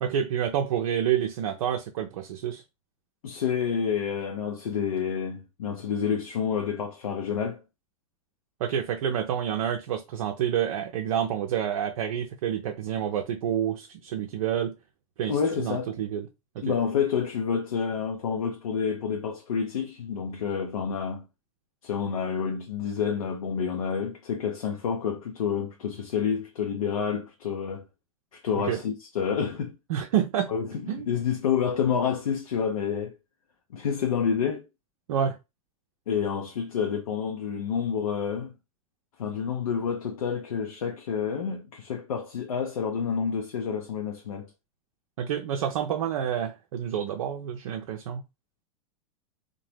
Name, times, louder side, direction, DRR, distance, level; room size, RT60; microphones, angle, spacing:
voice 1, 0.0-2.6 8.6-14.7 15.2-16.3 16.6-16.7 28.5-28.8 29.9-30.5 30.9-31.1 35.1-35.4 45.2-48.2, right 9 dB, 65° right, 0.4 m, -28 dB
voice 2, 3.2-7.6 15.3-15.9 16.6-21.2 21.8-27.9 28.3-29.8 30.5-33.2 33.7-34.7 36.1-38.5 39.2-44.5, left 7 dB, 80° left, 0.5 m, -29 dB
2.8 x 2.1 x 3.1 m
hypercardioid pair, 95°, 18 cm